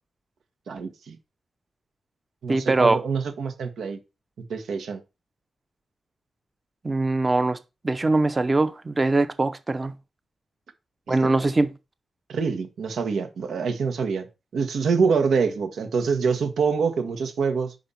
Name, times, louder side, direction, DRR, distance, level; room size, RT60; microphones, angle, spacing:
voice 1, 0.7-1.2 2.4-4.0 4.4-5.0 11.1-11.3 12.3-17.7, right 5 dB, 85° right, 1.5 m, -26 dB
voice 2, 2.5-3.0 6.8-7.6 7.8-9.9 11.1-11.7, right 2 dB, 20° right, 0.7 m, -22 dB
5.8 x 5.3 x 5.7 m
wide cardioid pair, 160°, 0 cm